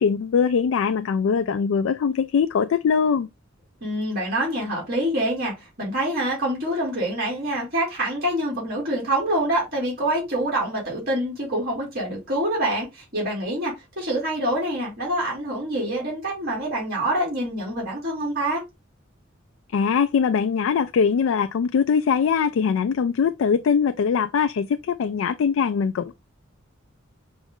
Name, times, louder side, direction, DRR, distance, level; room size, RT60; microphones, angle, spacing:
voice 1, 0.0-3.3 19.7-26.1, left 6 dB, 75° left, 0.3 m, -22 dB
voice 2, 3.8-18.6, right 1 dB, 50° right, 2.3 m, -26 dB
5.1 x 2.4 x 3.6 m
head